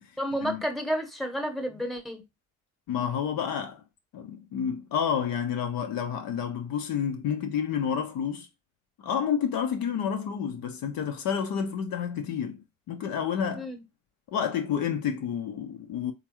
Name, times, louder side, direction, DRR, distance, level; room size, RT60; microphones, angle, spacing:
voice 1, 0.2-2.2 13.6-13.8, equal, ahead, 1.0 m, -31 dB
voice 2, 2.9-3.8 4.1-8.5 9.0-13.7 14.3-16.1, left 8 dB, 55° left, 0.7 m, -30 dB
3.7 x 2.5 x 2.9 m
hypercardioid pair, 45°, 41 cm